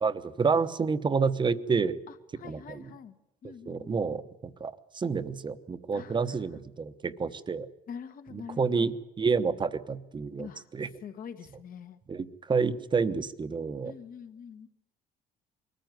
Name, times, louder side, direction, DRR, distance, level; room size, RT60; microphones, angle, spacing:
voice 1, 0.0-2.0 2.4-2.8 3.7-7.7 8.3-10.5 10.7-10.9 12.1-13.9, right 5 dB, 25° right, 12 dB, 1.0 m, -29 dB
voice 2, 2.1-3.2 3.4-4.0 5.9-6.5 7.9-8.9 10.4-10.7 11.0-12.0 13.8-14.7, left 7 dB, 55° left, 9 dB, 1.6 m, -45 dB
22.0 x 14.5 x 9.3 m, 0.92 s
cardioid pair, 110°, 17 cm